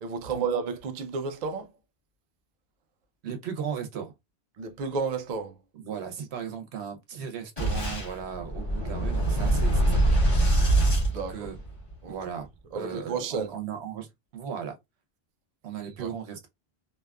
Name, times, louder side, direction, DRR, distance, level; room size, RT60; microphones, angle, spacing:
voice 1, 0.0-1.7 4.6-5.5 10.9-11.5 12.0-12.1 12.7-13.5 15.8-16.1, right 5 dB, 50° right, 0.6 m, -32 dB
voice 2, 3.2-4.1 5.7-10.2 11.1-11.6 12.1-12.5 12.7-14.1 14.3-14.7 15.6-16.5, right 8 dB, 90° right, 1.0 m, -36 dB
Boom, 7.6-11.9, right 1 dB, 35° left, 1.5 m, -24 dB
2.7 x 2.3 x 2.2 m
omnidirectional pair, 1.1 m